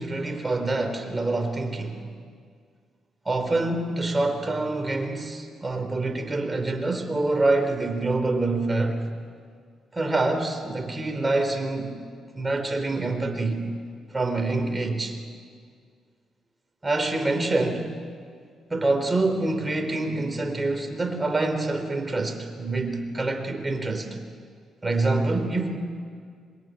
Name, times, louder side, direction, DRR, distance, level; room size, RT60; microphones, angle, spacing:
voice 1, 0.0-2.0 3.3-9.1 9.9-11.9 12.3-13.7 14.1-15.2 16.8-17.9 18.7-24.2 24.8-25.8, right 2 dB, 20° right, 5 dB, 3.8 m, -26 dB
27.0 x 22.5 x 9.2 m, 2.1 s
cardioid pair, 90°, 0 cm